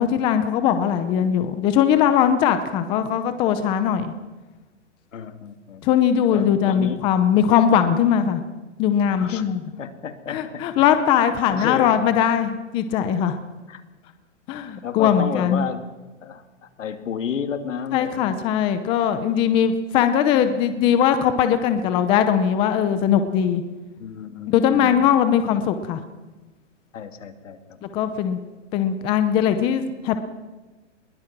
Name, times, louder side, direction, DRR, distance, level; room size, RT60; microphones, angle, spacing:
voice 1, 0.0-4.1 5.8-8.4 8.8-9.6 10.3-13.4 14.5-15.7 17.9-23.6 24.5-26.0 27.8-28.4 28.7-30.2, left 9 dB, 15° left, 10 dB, 0.7 m, -20 dB
voice 2, 5.1-7.0 9.2-9.5 9.8-10.6 11.5-12.0 13.7-13.8 14.8-15.8 16.2-18.5 24.0-25.1 26.9-27.8, left 7 dB, 80° left, 8 dB, 2.7 m, -32 dB
22.0 x 21.5 x 6.1 m, 1.2 s
hypercardioid pair, 165°, 37 cm